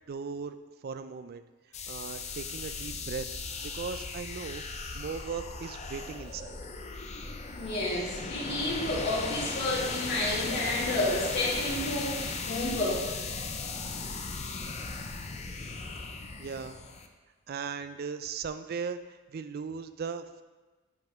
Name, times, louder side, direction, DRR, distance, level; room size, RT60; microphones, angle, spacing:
voice 1, 0.1-0.6 0.8-1.4 1.9-3.3 3.6-4.6 4.9-6.6 16.4-16.8 17.5-20.4, right 5 dB, 45° right, 10 dB, 0.3 m, -38 dB
sound 1, 1.7-17.1, left 4 dB, 30° left, 0.5 m, -37 dB
voice 2, 7.6-13.1, left 1 dB, 55° left, -6 dB, 2.1 m, -30 dB
10.5 x 5.4 x 3.0 m, 1.2 s
head